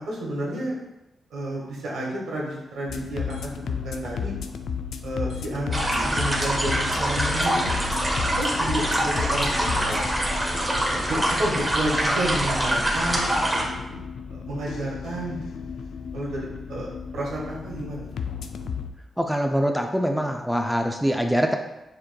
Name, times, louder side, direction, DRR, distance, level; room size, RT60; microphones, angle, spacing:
voice 1, 0.1-0.7 1.3-4.3 5.0-5.7 6.0-7.9 8.4-10.0 10.7-15.4 16.1-18.1, right 1 dB, 85° right, -4 dB, 1.4 m, -31 dB
sound 1, 2.9-18.9, left 6 dB, 80° left, 0.3 m, -34 dB
sound 2, 5.7-13.6, right 1 dB, 20° right, 1.1 m, -25 dB
voice 2, 19.2-21.6, equal, ahead, 4 dB, 0.4 m, -24 dB
6.8 x 3.0 x 2.2 m, 0.98 s
cardioid pair, 75°, 0 cm